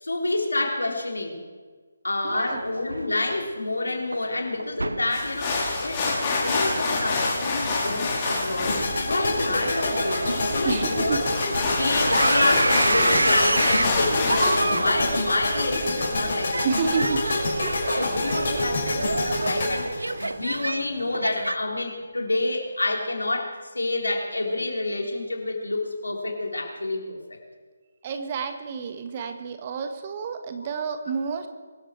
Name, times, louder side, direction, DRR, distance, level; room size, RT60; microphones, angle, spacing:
voice 1, 0.0-1.4 2.0-8.8 9.0-10.2 10.5-11.2 11.7-16.9 17.9-27.2, left 2 dB, 75° left, 1 dB, 3.8 m, -28 dB
voice 2, 2.2-2.6 10.6-11.3 16.6-17.3 17.9-18.2 18.5-18.7 28.0-31.5, right 5 dB, 30° right, 7 dB, 1.5 m, -29 dB
sound 1, 2.3-21.6, right 2 dB, 75° right, 0.7 m, -29 dB
sound 2, 5.1-14.7, left 3 dB, 25° left, 4.4 m, -27 dB
sound 3, 8.7-20.8, left 2 dB, 45° left, 6.4 m, -27 dB
23.5 x 13.0 x 4.6 m, 1.5 s
figure-of-eight pair, 150°, 0 cm